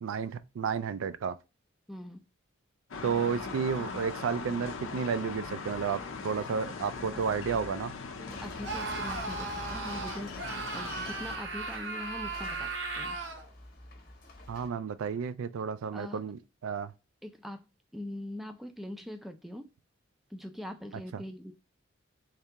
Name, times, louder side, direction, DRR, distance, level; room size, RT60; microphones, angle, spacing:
voice 1, 0.0-1.4 3.0-8.0 14.5-16.9, right 6 dB, 80° right, 0.4 m, -32 dB
voice 2, 1.9-2.2 7.1-7.4 8.2-13.2 15.9-16.2 17.2-17.7 17.9-19.7 20.3-21.5, left 1 dB, ahead, 0.3 m, -42 dB
sound 1, 2.9-11.4, left 4 dB, 75° left, 0.5 m, -40 dB
sound 2, 8.3-14.7, left 2 dB, 45° left, 0.8 m, -48 dB
Screaming, 8.6-13.5, right 3 dB, 60° right, 0.8 m, -37 dB
3.3 x 2.8 x 3.4 m
head